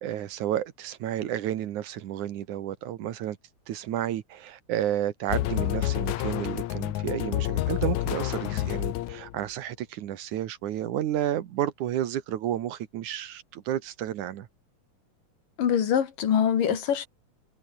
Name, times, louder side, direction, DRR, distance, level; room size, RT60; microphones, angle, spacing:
voice 1, 0.0-3.4 3.7-14.5, right 11 dB, 70° right, 2.7 m, -31 dB
sound 1, 5.3-9.5, left 15 dB, 70° left, 2.1 m, -29 dB
voice 2, 15.6-17.1, left 8 dB, 90° left, 4.2 m, -24 dB
omnidirectional pair, 3.7 m